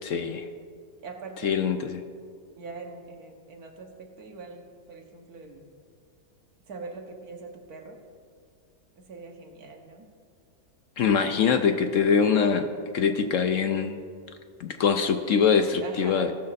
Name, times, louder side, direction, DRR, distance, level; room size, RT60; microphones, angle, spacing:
voice 1, 0.0-0.5 1.4-2.0 11.0-12.7 12.9-14.0 14.6-16.3, left 6 dB, 65° left, 7 dB, 0.9 m, -23 dB
voice 2, 1.0-1.6 2.6-5.7 6.7-8.0 9.0-10.1 15.8-16.3, right 3 dB, 75° right, 2 dB, 1.7 m, -42 dB
17.0 x 6.5 x 4.0 m, 2.1 s
omnidirectional pair, 1.6 m